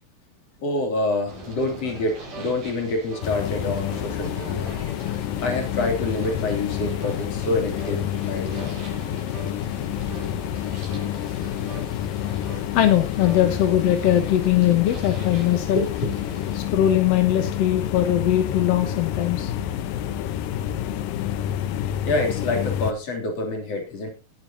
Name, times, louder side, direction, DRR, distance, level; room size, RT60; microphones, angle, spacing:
voice 1, 0.6-4.7 5.4-8.8 15.7-16.1 22.0-24.1, left 2 dB, 45° left, 2 dB, 4.0 m, -27 dB
sound 1, 1.3-16.7, right 1 dB, 80° right, 6.7 m, -43 dB
sound 2, 2.3-2.6 3.1-3.3 3.9-4.1 4.6-4.9 5.4-5.7 6.2-6.5 7.0-7.3 7.8-8.0 8.5-8.8 9.3-9.6 10.1-10.3 10.9-11.2 11.7-11.9 12.4-12.7 13.2-13.5 14.0-14.2, right 2 dB, 60° right, 4.2 m, -41 dB
sound 3, 3.2-22.9, left 10 dB, 80° left, 2.5 m, -28 dB
voice 2, 12.7-15.8 16.5-19.5, left 11 dB, 60° left, 7 dB, 1.8 m, -21 dB
19.5 x 9.6 x 2.8 m, 0.29 s
omnidirectional pair, 4.1 m